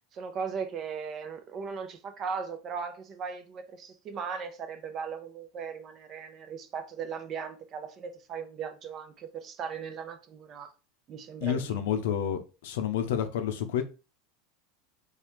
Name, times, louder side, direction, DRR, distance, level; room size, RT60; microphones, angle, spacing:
voice 1, 0.1-10.7 11.1-12.0, right 6 dB, 40° right, 0.7 m, -38 dB
voice 2, 11.4-13.8, left 9 dB, 75° left, 0.6 m, -29 dB
4.1 x 2.3 x 3.1 m
hypercardioid pair, 85°, 0 cm